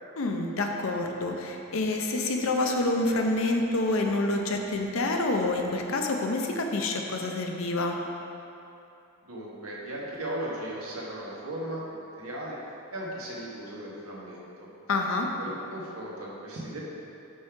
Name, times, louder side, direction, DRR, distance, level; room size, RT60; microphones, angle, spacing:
voice 1, 0.2-8.0 14.9-15.3, left 2 dB, 70° left, 2 dB, 0.6 m, -27 dB
voice 2, 9.2-12.6 12.9-14.7 15.4-16.9, right 1 dB, 85° right, -5 dB, 1.2 m, -37 dB
5.7 x 5.2 x 3.7 m, 2.8 s
head